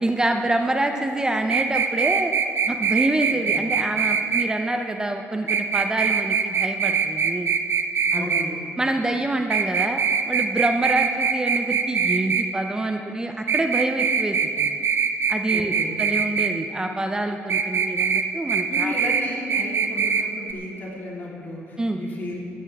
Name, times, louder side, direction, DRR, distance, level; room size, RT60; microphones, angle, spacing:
voice 1, 0.0-2.3 2.7-7.5 8.1-8.4 8.8-10.0 10.3-14.8 15.3-19.0 21.8-22.0, right 2 dB, 15° right, 5 dB, 0.7 m, -26 dB
sound 1, 1.5-4.5 5.5-8.4 9.5-12.4 13.5-16.5 17.5-18.2 18.5-19.2 19.5-20.2 20.5-20.6, right 6 dB, 55° right, 0.8 m, -22 dB
voice 2, 3.3-3.6 8.2-8.6 15.5-15.9 18.7-22.4, left 1 dB, 45° left, -4 dB, 3.7 m, -33 dB
16.5 x 13.0 x 3.6 m, 2.7 s
cardioid pair, 95°, 5 cm